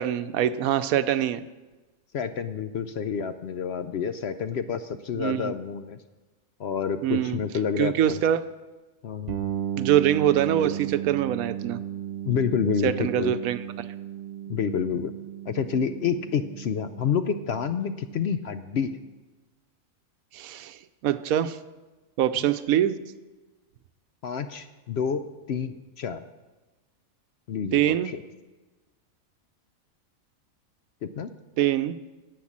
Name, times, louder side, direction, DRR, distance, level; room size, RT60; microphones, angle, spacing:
voice 1, 0.0-1.4 5.2-5.5 7.0-7.4 7.8-8.4 9.8-11.8 12.8-13.9 20.3-20.8 21.0-21.6 22.2-23.0 27.7-28.1 31.6-32.0, right 11 dB, 80° right, 12 dB, 1.0 m, -24 dB
voice 2, 2.1-6.0 6.6-8.2 9.0-9.3 12.3-13.4 14.5-15.1 15.5-18.9 24.2-25.2 25.5-26.2 27.5-28.2 31.0-31.3, left 7 dB, 60° left, 10 dB, 0.7 m, -28 dB
sound 1, 9.3-19.0, right 10 dB, 50° right, 1.1 m, -35 dB
10.0 x 8.5 x 7.3 m, 1.2 s
omnidirectional pair, 1.5 m